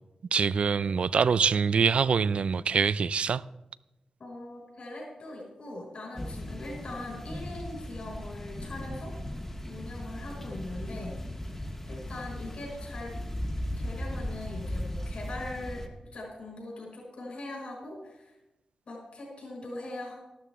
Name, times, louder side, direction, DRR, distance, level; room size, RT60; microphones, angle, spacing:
voice 1, 0.3-3.4, right 6 dB, 65° right, 0.3 m, -24 dB
voice 2, 4.2-9.2 9.7-11.2 11.9-13.2 13.8-15.8 16.1-18.4 18.9-20.1, left 2 dB, 60° left, 5.4 m, -41 dB
sound 1, 6.1-15.9, left 1 dB, 20° left, 1.3 m, -37 dB
13.0 x 12.5 x 3.6 m
wide cardioid pair, 100°, 2 cm